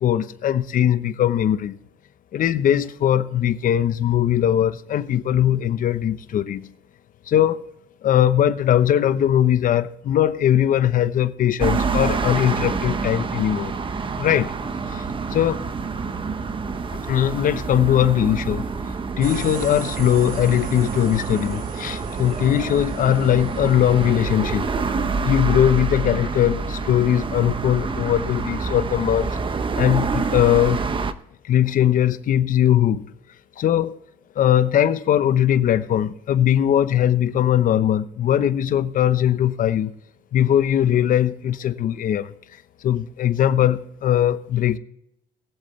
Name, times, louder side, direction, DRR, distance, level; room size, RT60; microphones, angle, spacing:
voice 1, 0.0-1.8 2.3-6.7 7.3-7.6 8.0-13.7 14.2-14.5 14.9-15.0 15.3-15.6 16.9-18.6 19.2-24.7 25.2-29.4 29.8-30.8 31.5-33.0 33.6-34.0 34.4-39.9 40.3-42.3 42.8-44.8, left 10 dB, 55° left, 0.9 m, -20 dB
sound 1, 11.6-31.1, right 4 dB, 30° right, 0.9 m, -27 dB
sound 2, 19.2-24.4, right 6 dB, 55° right, 1.5 m, -35 dB
21.5 x 7.8 x 3.2 m
cardioid pair, 110°, 17 cm